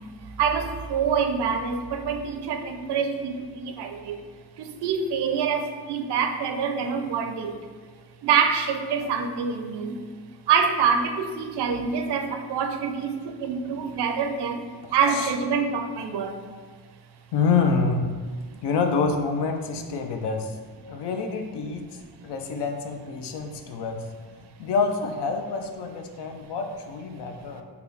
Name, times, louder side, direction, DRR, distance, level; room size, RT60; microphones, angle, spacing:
voice 1, 0.0-4.2 4.6-7.7 8.2-10.0 10.5-16.4 18.5-18.6 27.4-27.6, right 6 dB, 65° right, 6 dB, 0.5 m, -26 dB
voice 2, 17.3-18.1 18.6-20.6 20.9-24.1 24.6-27.6, left 4 dB, 65° left, 5 dB, 0.5 m, -27 dB
3.7 x 2.3 x 3.4 m, 1.5 s
cardioid pair, 70°, 44 cm